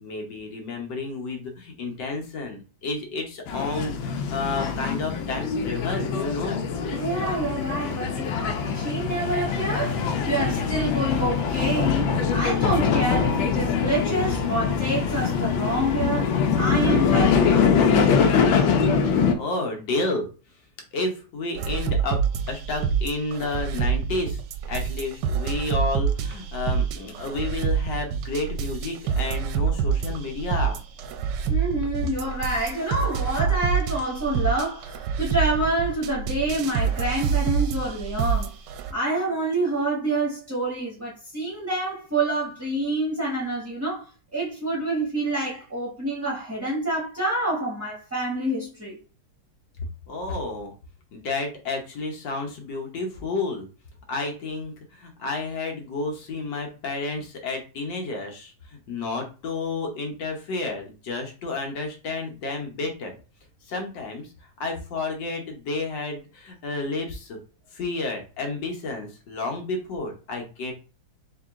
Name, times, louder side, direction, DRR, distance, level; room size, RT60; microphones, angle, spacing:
voice 1, 0.0-6.6 19.3-20.3 20.9-22.2 22.5-24.4 24.7-30.8 50.1-50.7 51.1-53.7 54.1-63.2 63.6-67.4 67.7-70.7, left 3 dB, 70° left, 1.7 m, -31 dB
sound 1, 3.5-19.3, left 6 dB, 85° left, 1.4 m, -23 dB
voice 2, 6.9-18.1 31.5-38.5 38.9-49.0, right 2 dB, 10° right, 0.8 m, -27 dB
sound 2, 21.6-38.9, right 6 dB, 75° right, 1.2 m, -26 dB
4.1 x 3.0 x 3.6 m
omnidirectional pair, 2.1 m